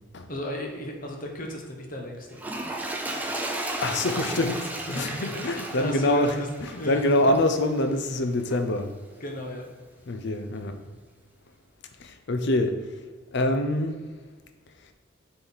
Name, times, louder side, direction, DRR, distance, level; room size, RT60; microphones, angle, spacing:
voice 1, 0.3-2.4 4.8-7.4 9.2-9.7, equal, 45° left, 1 dB, 1.1 m, -34 dB
Toilet flush, 2.3-7.8 8.5-8.6, right 1 dB, 10° right, 0.6 m, -34 dB
voice 2, 3.8-8.9 10.1-10.8 12.0-12.8 13.3-14.0, left 1 dB, 60° left, 8 dB, 0.6 m, -25 dB
7.6 x 4.0 x 4.1 m, 1.4 s
head